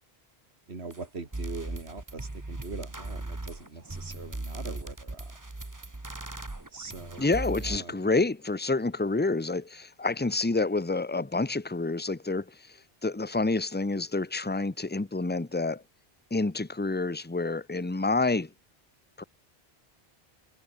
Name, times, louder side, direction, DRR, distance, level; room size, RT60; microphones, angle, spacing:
voice 1, 0.7-5.2 6.7-7.2 7.6-7.9, right 3 dB, 80° right, 2.8 m, -41 dB
sound 1, 0.9-1.0 1.3-7.8, right 2 dB, 20° right, 1.4 m, -38 dB
voice 2, 7.2-12.5 13.0-15.8 16.3-18.5 19.2-19.3, left 3 dB, 10° left, 0.9 m, -28 dB
omnidirectional pair, 1.1 m